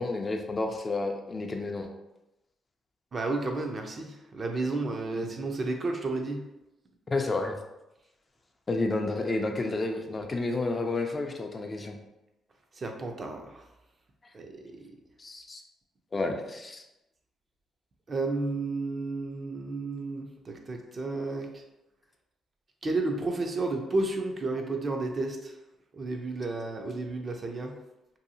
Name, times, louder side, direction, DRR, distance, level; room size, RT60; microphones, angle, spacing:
voice 1, 0.0-1.9 5.1-5.3 7.1-7.6 8.7-12.0 15.2-15.6 16.1-16.8, left 2 dB, 30° left, 4 dB, 0.3 m, -30 dB
voice 2, 3.1-6.4 12.7-13.6 14.3-14.9 18.1-21.6 22.8-25.6 25.9-27.7, right 2 dB, 40° right, 3 dB, 0.4 m, -32 dB
2.7 x 2.3 x 2.7 m, 0.94 s
cardioid pair, 90°, 0 cm